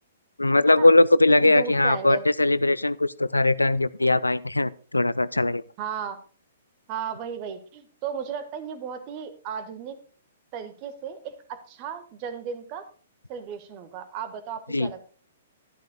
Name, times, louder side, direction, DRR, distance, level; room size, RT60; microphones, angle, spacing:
voice 1, 0.4-5.6 14.7-14.9, left 2 dB, 80° left, 0.4 m, -20 dB
voice 2, 1.4-2.2 5.8-6.2 6.9-10.0 10.5-12.8 13.3-15.1, right 7 dB, 35° right, 1.4 m, -35 dB
12.0 x 11.5 x 2.3 m
figure-of-eight pair, 115°, 0 cm